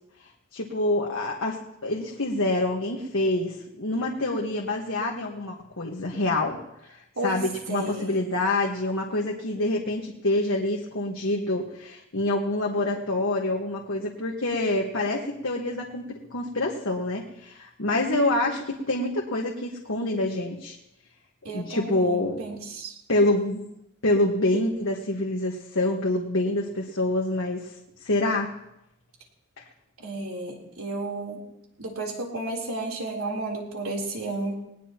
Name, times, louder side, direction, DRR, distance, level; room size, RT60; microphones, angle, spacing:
voice 1, 0.5-6.6 6.9-20.8 21.4-22.4 23.1-23.7 24.0-27.7 28.0-28.5, left 2 dB, 65° left, -1 dB, 1.5 m, -26 dB
voice 2, 7.7-8.2 21.4-23.0 30.0-31.4 31.8-34.5, right 2 dB, 85° right, -1 dB, 3.7 m, -32 dB
19.5 x 19.5 x 3.0 m, 0.83 s
head